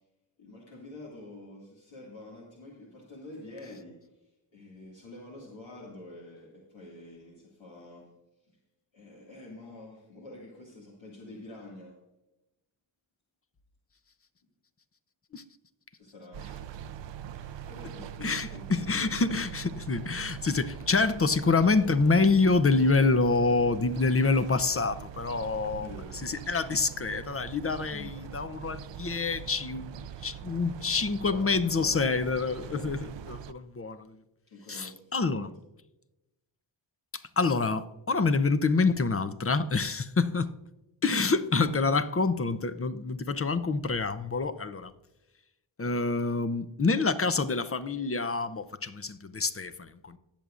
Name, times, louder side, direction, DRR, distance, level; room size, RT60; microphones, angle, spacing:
voice 1, 0.4-8.1 8.4-8.6 8.9-12.0 16.0-16.9 17.3-19.2 25.8-26.4 27.9-28.1 31.3-32.0 32.7-33.0 34.5-35.5 41.3-41.5, left 2 dB, 70° left, 2.2 m, -47 dB
sound 1, 16.3-33.5, right 9 dB, 65° right, 0.6 m, -43 dB
voice 2, 18.2-25.9 26.2-34.2 34.7-35.5 37.4-40.5 41.0-44.9 45.8-50.2, left 4 dB, 30° left, 0.7 m, -27 dB
19.0 x 6.9 x 2.5 m
cardioid pair, 60°, 47 cm